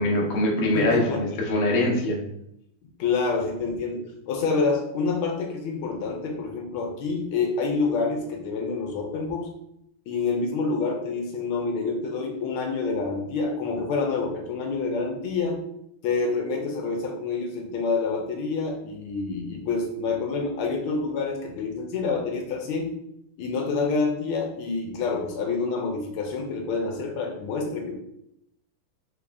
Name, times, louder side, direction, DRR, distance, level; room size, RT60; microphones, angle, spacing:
voice 1, 0.0-2.2, left 1 dB, 60° left, -2 dB, 0.9 m, -23 dB
voice 2, 0.7-1.2 3.0-9.5 10.1-15.6 16.0-23.0 23.4-27.9, left 4 dB, 75° left, 2 dB, 1.4 m, -27 dB
4.1 x 2.4 x 3.3 m, 0.76 s
omnidirectional pair, 2.4 m